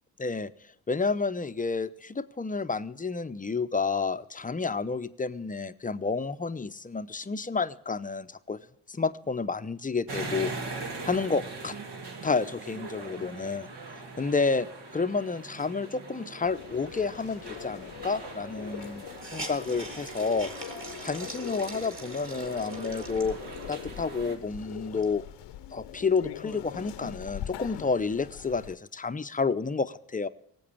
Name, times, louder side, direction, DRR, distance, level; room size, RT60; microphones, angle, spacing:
voice 1, 0.2-0.5 0.9-8.6 8.9-10.5 11.0-11.8 12.2-13.7 13.9-14.7 14.9-19.0 19.3-20.5 21.0-23.4 23.7-25.2 25.7-30.3, left 4 dB, 20° left, 13 dB, 0.7 m, -30 dB
sound 1, 10.1-24.4, right 3 dB, 65° right, 2.3 m, -41 dB
sound 2, 16.4-28.7, left 12 dB, 75° left, 0.8 m, -43 dB
Hiss, 17.9-18.0 18.2-18.3 18.8-23.8 24.4-24.5 24.8-26.2, right 2 dB, 30° right, 2.9 m, -44 dB
17.5 x 7.9 x 7.2 m, 0.73 s
supercardioid pair, 55°, 43 cm